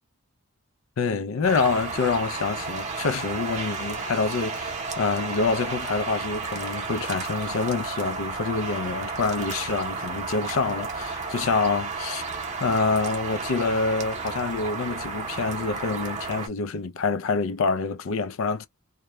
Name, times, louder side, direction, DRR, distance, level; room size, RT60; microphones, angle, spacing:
voice 1, 1.0-12.2 12.6-18.7, left 4 dB, 70° left, 0.4 m, -26 dB
sound 1, 1.4-16.5, right 4 dB, 30° right, 0.7 m, -32 dB
2.2 x 2.1 x 2.9 m
head